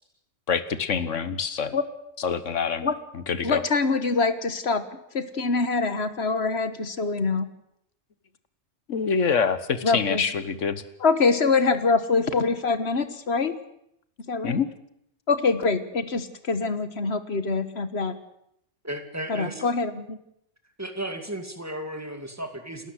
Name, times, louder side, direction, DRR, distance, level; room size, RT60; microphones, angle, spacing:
voice 1, 0.5-1.7 2.2-2.9 3.3-3.6 8.9-10.8 14.4-14.7, left 6 dB, 80° left, 13 dB, 1.6 m, -26 dB
voice 2, 3.4-7.5 9.8-10.2 11.0-13.5 14.3-14.6 15.3-18.1 19.3-20.2, left 4 dB, 60° left, 11 dB, 1.6 m, -24 dB
voice 3, 18.8-19.7 20.8-22.9, right 1 dB, 15° right, 5 dB, 2.4 m, -34 dB
29.0 x 13.0 x 7.9 m, 0.77 s
omnidirectional pair, 1.3 m